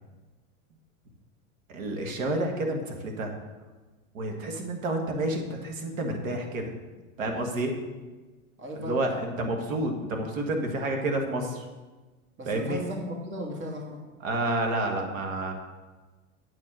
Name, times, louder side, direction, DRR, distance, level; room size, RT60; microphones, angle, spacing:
voice 1, 1.7-3.3 4.1-6.8 7.2-7.7 8.7-11.6 12.4-12.8 14.2-15.5, right 1 dB, 80° right, 3 dB, 1.8 m, -29 dB
voice 2, 8.6-9.2 12.4-14.0, equal, 30° right, 1 dB, 1.9 m, -36 dB
8.6 x 4.8 x 7.6 m, 1.3 s
hypercardioid pair, 100°, 40 cm